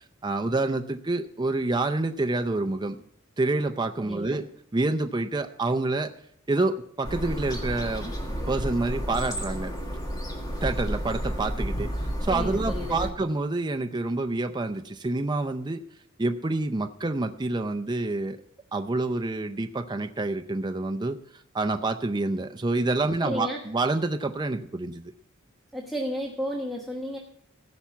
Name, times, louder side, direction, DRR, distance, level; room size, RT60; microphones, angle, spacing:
voice 1, 0.2-3.0 3.4-4.5 4.7-6.1 6.5-8.1 8.5-9.7 10.6-11.9 12.2-15.8 16.2-18.4 18.7-25.1, right 2 dB, 20° right, 7 dB, 0.5 m, -27 dB
voice 2, 4.0-4.4 12.3-13.1 23.2-23.6 25.7-27.2, equal, ahead, -3 dB, 1.3 m, -32 dB
sound 1, 7.0-13.1, equal, 20° left, 1.8 m, -31 dB
16.0 x 5.7 x 7.1 m, 0.67 s
head